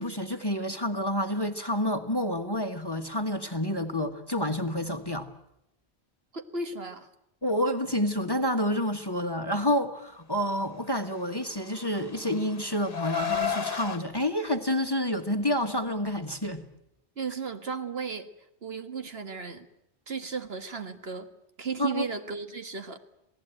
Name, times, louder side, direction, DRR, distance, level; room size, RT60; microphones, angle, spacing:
voice 1, 0.0-5.3 7.4-16.6 21.8-22.1, left 1 dB, 20° left, 1.4 m, -29 dB
voice 2, 6.3-7.1 17.2-18.3 18.6-19.7 20.1-21.3 21.6-23.0, right 5 dB, 65° right, 1.9 m, -35 dB
Car, 11.5-14.0, left 7 dB, 55° left, 1.5 m, -32 dB
28.0 x 18.0 x 9.0 m
omnidirectional pair, 1.1 m